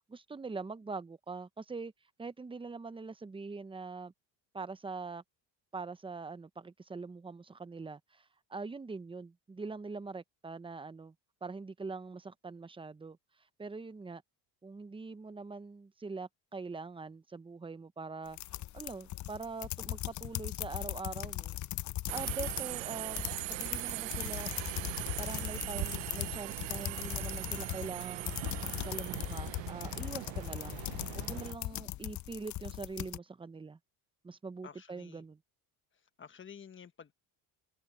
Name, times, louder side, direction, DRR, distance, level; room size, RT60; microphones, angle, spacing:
voice 1, 0.1-1.9 2.2-4.1 4.5-5.2 5.7-11.1 11.4-13.2 13.6-14.2 14.6-18.4 18.7-21.5 22.1-24.5 25.2-30.8 31.2-33.8 34.2-35.4, right 4 dB, 10° right, 0.7 m, -43 dB
sound 1, 18.3-22.7 23.0-33.2, left 15 dB, 45° left, 0.6 m, -39 dB
Subway metro underground, 22.1-31.5, right 21 dB, 80° right, 0.9 m, -40 dB
voice 2, 34.6-35.2 36.2-37.1, left 7 dB, 25° left, 1.2 m, -51 dB
cardioid pair, 110°, 43 cm